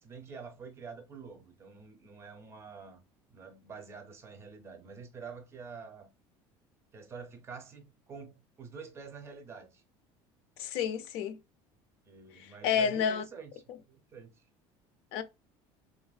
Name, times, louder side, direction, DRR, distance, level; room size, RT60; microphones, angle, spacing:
voice 1, 0.0-3.0 3.3-6.1 6.9-9.8 12.0-13.5 13.9-14.4, right 5 dB, 25° right, 0.6 m, -47 dB
voice 2, 10.6-11.3 12.4-13.2 15.1-15.2, left 7 dB, 65° left, 0.4 m, -30 dB
3.2 x 2.4 x 2.2 m
cardioid pair, 160°, 11 cm